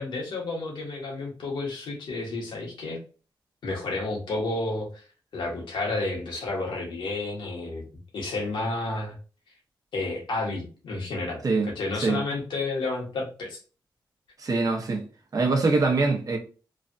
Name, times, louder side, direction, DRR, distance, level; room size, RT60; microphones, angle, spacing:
voice 1, 0.0-3.0 3.6-5.0 5.3-7.8 8.1-9.1 9.9-13.6, left 2 dB, 90° left, 1.2 m, -31 dB
voice 2, 14.4-15.0 15.3-16.4, right 3 dB, 50° right, 0.8 m, -23 dB
3.2 x 2.2 x 2.6 m
cardioid pair, 75°, 8 cm